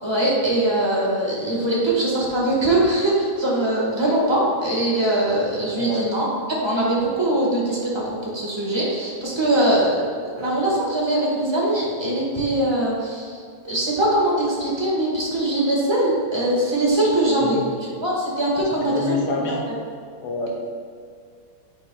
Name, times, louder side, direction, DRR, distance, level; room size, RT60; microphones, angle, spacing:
voice 1, 0.0-7.9 8.3-9.9 10.4-13.4 13.6-19.2 19.7-19.8, right 1 dB, 15° right, -5 dB, 1.2 m, -22 dB
voice 2, 5.7-6.0 17.4-17.7 18.9-19.6 20.2-20.5, left 2 dB, 80° left, 0 dB, 1.7 m, -27 dB
9.5 x 5.3 x 2.3 m, 2.2 s
omnidirectional pair, 2.4 m